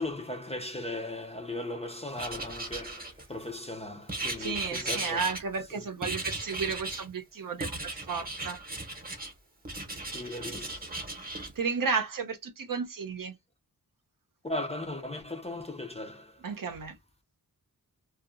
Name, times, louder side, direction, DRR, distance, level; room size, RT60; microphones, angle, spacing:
voice 1, 0.0-5.2 5.7-5.8 10.1-10.9 14.4-16.5, left 2 dB, 15° left, 0.5 m, -37 dB
Writing, 2.2-3.5 4.1-5.7 6.0-7.1 7.6-9.3 9.6-11.5, right 2 dB, 25° right, 0.9 m, -37 dB
voice 2, 4.4-8.6 11.6-13.3 16.4-17.0, right 5 dB, 55° right, 0.7 m, -33 dB
2.6 x 2.4 x 2.5 m
wide cardioid pair, 90°, 39 cm